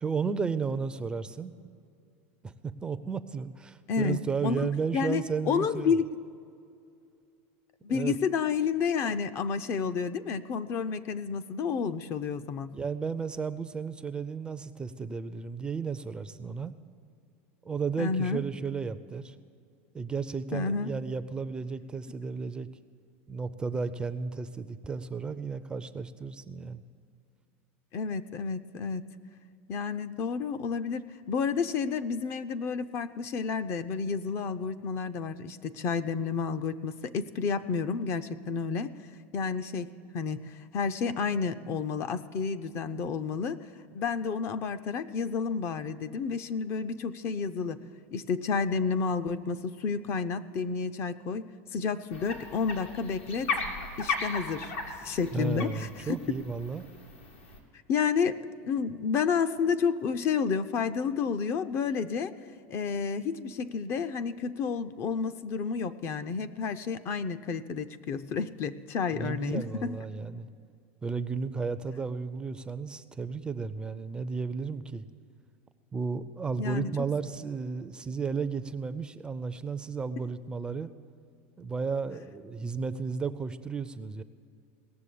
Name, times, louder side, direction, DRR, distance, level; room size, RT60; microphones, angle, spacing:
voice 1, 0.0-1.5 2.4-5.9 7.9-8.1 12.7-16.7 17.6-19.3 19.9-22.7 23.3-26.8 55.3-56.9 69.1-70.5 71.0-75.1 75.9-80.9 81.6-84.2, right 5 dB, 15° right, 11 dB, 0.4 m, -33 dB
voice 2, 4.4-6.1 7.8-12.8 18.0-18.4 20.5-20.9 27.9-29.1 29.7-38.9 39.3-39.9 40.1-43.7 43.9-47.8 48.1-53.6 54.0-56.2 57.9-58.4 58.6-62.3 62.7-70.0 76.6-76.9, left 5 dB, 40° left, 12 dB, 0.5 m, -30 dB
sound 1, 52.1-57.6, left 4 dB, 85° left, 2.5 m, -36 dB
18.0 x 7.1 x 8.4 m, 2.4 s
supercardioid pair, 140°, 7 cm